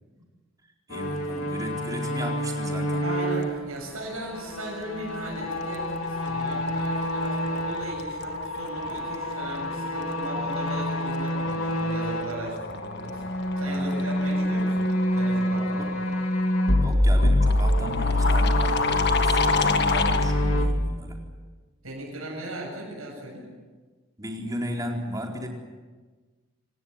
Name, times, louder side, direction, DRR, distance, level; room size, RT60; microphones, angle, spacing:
sound 1, 0.9-8.0 8.3-12.4 13.0-20.7, equal, 85° left, 3.4 m, -26 dB
voice 1, 0.9-3.0 13.6-14.2 15.8-16.0 16.8-21.2 24.2-25.5, equal, 15° right, 1 dB, 4.4 m, -35 dB
voice 2, 3.0-13.2 13.6-15.9 21.8-23.5, right 1 dB, 90° right, -2 dB, 7.7 m, -37 dB
sound 2, 4.5-4.8 5.1-20.3, left 4 dB, 55° left, 1.7 m, -31 dB
27.5 x 18.0 x 9.7 m, 1.3 s
head